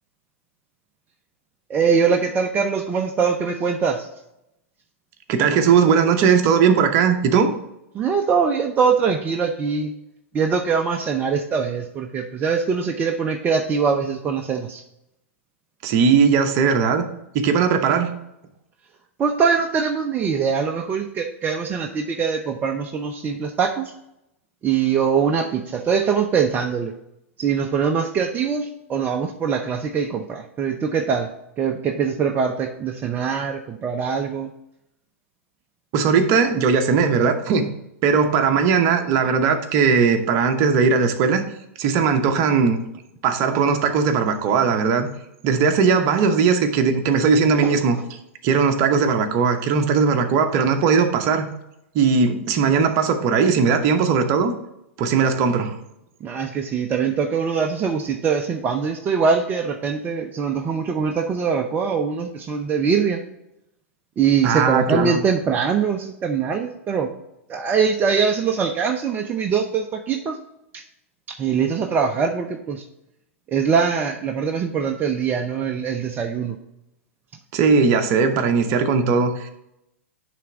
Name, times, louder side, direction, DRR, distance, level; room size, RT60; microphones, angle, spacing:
voice 1, 1.7-4.1 7.9-9.9 10.3-14.8 19.2-23.9 24.6-26.9 27.4-31.3 31.6-34.5 47.6-47.8 56.2-63.2 64.2-67.1 67.5-70.4 70.7-70.8 71.3-72.8 73.5-76.6, right 6 dB, 25° right, 3 dB, 0.6 m, -22 dB
voice 2, 5.3-7.5 15.8-17.0 17.3-18.1 35.9-37.7 38.0-41.4 41.8-42.8 43.2-45.1 45.4-48.0 48.4-51.5 51.9-54.5 55.0-55.7 64.4-65.2 77.5-79.5, right 5 dB, 45° right, 7 dB, 1.0 m, -18 dB
10.0 x 3.5 x 3.9 m, 0.84 s
hypercardioid pair, 105°, 7 cm